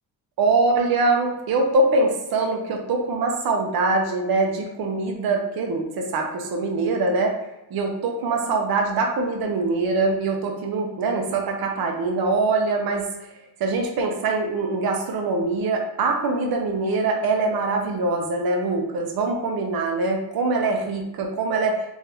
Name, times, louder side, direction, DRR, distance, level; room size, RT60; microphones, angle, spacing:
voice 1, 0.4-7.3 7.7-13.0 13.6-21.8, right 3 dB, 65° right, 2 dB, 0.7 m, -23 dB
3.4 x 2.6 x 3.3 m, 0.96 s
cardioid pair, 125°, 40 cm